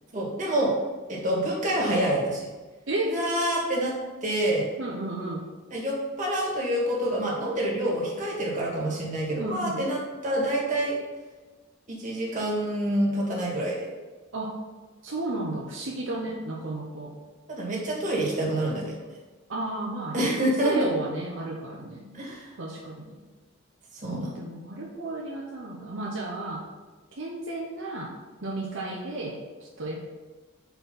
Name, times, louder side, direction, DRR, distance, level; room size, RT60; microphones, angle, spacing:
voice 1, 0.1-0.7 1.1-2.5 3.1-3.9 4.2-4.7 5.7-11.0 11.9-13.9 17.5-18.9 20.1-20.7 22.1-22.5 24.0-24.3, right 1 dB, 40° right, -4 dB, 2.0 m, -27 dB
voice 2, 2.9-3.2 4.8-5.4 9.4-9.8 14.3-14.6 15.0-17.2 19.5-22.1 22.6-23.1 24.1-26.6 27.2-28.1 28.4-30.0, right 2 dB, 70° right, -3 dB, 0.9 m, -33 dB
5.6 x 4.5 x 5.4 m, 1.3 s
head